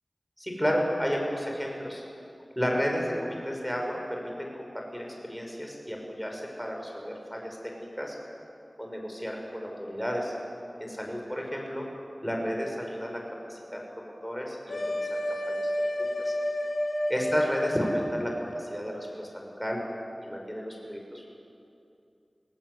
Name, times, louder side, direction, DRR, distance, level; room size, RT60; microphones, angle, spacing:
voice 1, 0.4-2.0 2.5-8.2 8.8-10.3 10.8-11.8 12.2-13.2 13.5-15.2 15.5-15.7 16.0-16.3 17.1-19.8 20.2-21.3, equal, 5° left, 0 dB, 5.9 m, -32 dB
sound 1, 14.7-19.1, left 1 dB, 80° left, 2.9 m, -31 dB
26.5 x 18.0 x 8.1 m, 2.6 s
wide cardioid pair, 45°, 0 cm